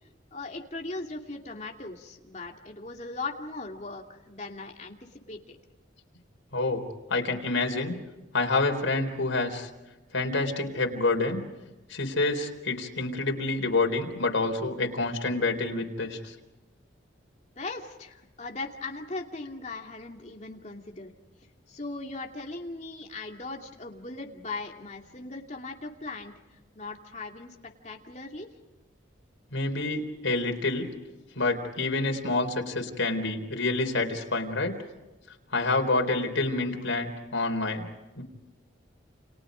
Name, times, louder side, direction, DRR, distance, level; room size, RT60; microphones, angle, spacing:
voice 1, 0.3-5.6 17.6-21.1 21.7-26.3 26.7-27.6 27.8-28.5, left 3 dB, 35° left, 2 dB, 2.6 m, -39 dB
voice 2, 6.5-6.8 7.1-8.0 8.3-9.7 10.1-11.4 11.9-16.3 29.5-30.8 31.3-34.8 35.5-37.9 38.2-38.3, left 2 dB, 80° left, 3 dB, 3.9 m, -27 dB
29.5 x 29.0 x 5.2 m, 1.1 s
head